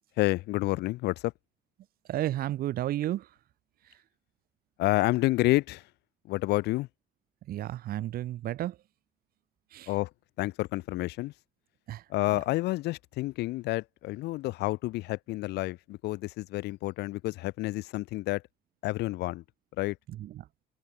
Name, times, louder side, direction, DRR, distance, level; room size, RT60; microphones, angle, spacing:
voice 1, 0.2-1.3 4.8-5.8 6.3-6.9 9.9-10.1 10.4-11.3 12.1-18.4 18.8-19.4 19.8-20.0, left 19 dB, 80° left, 1.0 m, -29 dB
voice 2, 2.1-3.3 7.5-8.8 9.7-9.9 11.9-12.0 20.1-20.5, right 13 dB, 60° right, 0.9 m, -32 dB
cardioid pair, 110°, 17 cm